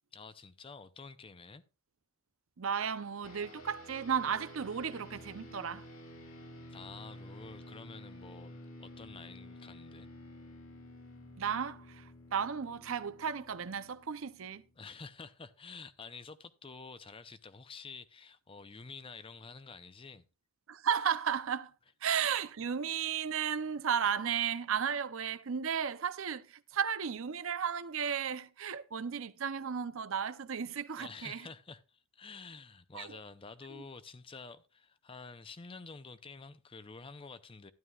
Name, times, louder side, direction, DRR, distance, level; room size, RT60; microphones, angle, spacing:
voice 1, 0.1-1.6 6.7-10.1 14.8-20.2 31.0-37.7, left 4 dB, 25° left, 0.5 m, -49 dB
voice 2, 2.6-5.8 11.4-14.6 20.7-21.7 22.0-31.5 32.9-33.2 33.7-33.8, right 7 dB, 65° right, 0.6 m, -34 dB
sound 1, 3.2-14.9, left 1 dB, 75° left, 2.9 m, -51 dB
12.5 x 11.0 x 2.3 m
head